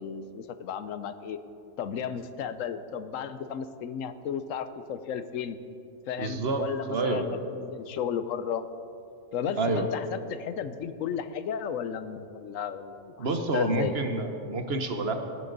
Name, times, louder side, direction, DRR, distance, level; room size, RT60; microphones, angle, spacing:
voice 1, 0.0-1.4 1.8-5.6 6.1-8.7 9.3-13.3 13.5-13.9, left 7 dB, 85° left, 11 dB, 1.1 m, -34 dB
voice 2, 6.2-7.3 9.6-9.9 13.2-15.1, right 3 dB, 55° right, 6 dB, 1.2 m, -28 dB
18.0 x 11.0 x 4.0 m, 2.6 s
omnidirectional pair, 1.3 m